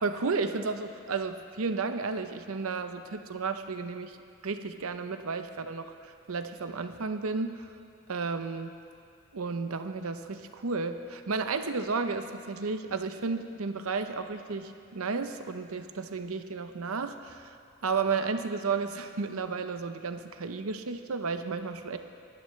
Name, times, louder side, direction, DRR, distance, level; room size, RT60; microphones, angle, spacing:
voice 1, 0.0-4.2 4.4-7.7 8.1-8.7 9.3-17.6 17.8-22.0, right 4 dB, 85° right, 8 dB, 0.7 m, -33 dB
24.0 x 11.0 x 3.2 m, 2.4 s
head